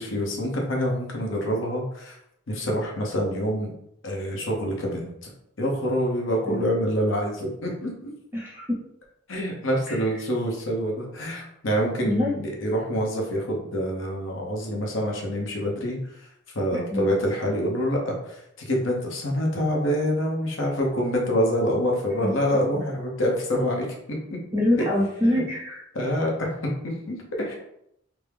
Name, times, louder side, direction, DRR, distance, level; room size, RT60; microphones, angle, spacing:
voice 1, 0.0-2.2 2.5-3.7 4.0-5.3 5.6-8.1 9.3-16.0 16.5-23.9 24.3-24.4 24.8-24.9 25.9-27.5, equal, 75° left, -1 dB, 0.8 m, -26 dB
voice 2, 8.3-8.8 9.9-10.0 12.1-12.3 16.7-17.1 22.2-22.3 22.7-22.8 24.5-25.8, left 1 dB, 10° right, -5 dB, 0.7 m, -25 dB
3.5 x 2.0 x 3.4 m, 0.77 s
head